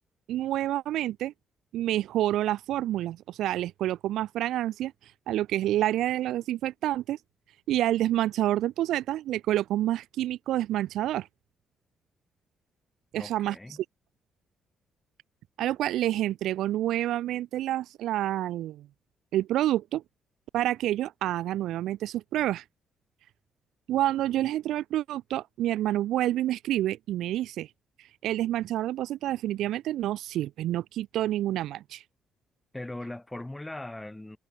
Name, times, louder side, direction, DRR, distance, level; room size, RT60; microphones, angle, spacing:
voice 1, 0.3-1.3 1.7-4.9 5.3-7.2 7.7-11.3 13.1-13.6 15.6-18.9 19.3-20.0 20.5-22.6 23.9-27.7 28.0-32.0, right 13 dB, 85° right, 0.4 m, -28 dB
voice 2, 13.2-13.8 32.7-34.4, left 1 dB, 10° left, 7.4 m, -39 dB
cardioid pair, 90°, 0 cm